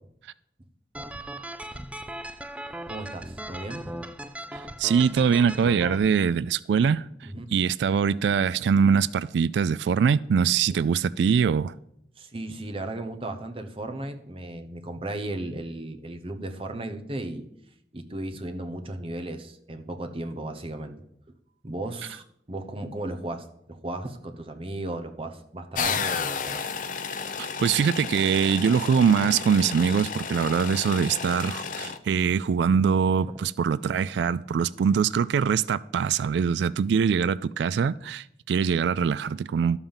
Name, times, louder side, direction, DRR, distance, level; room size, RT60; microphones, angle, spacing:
sound 1, 0.9-6.0, right 1 dB, 5° right, 0.4 m, -38 dB
voice 1, 2.9-3.9 7.3-7.4 12.2-17.5 17.9-21.0 21.6-26.6, right 1 dB, 30° right, 0.9 m, -35 dB
voice 2, 4.5-7.1 7.5-11.7 27.6-39.8, right 6 dB, 80° right, 0.3 m, -23 dB
sound 2, 25.7-32.0, left 6 dB, 45° left, 0.7 m, -32 dB
12.0 x 5.6 x 7.1 m
head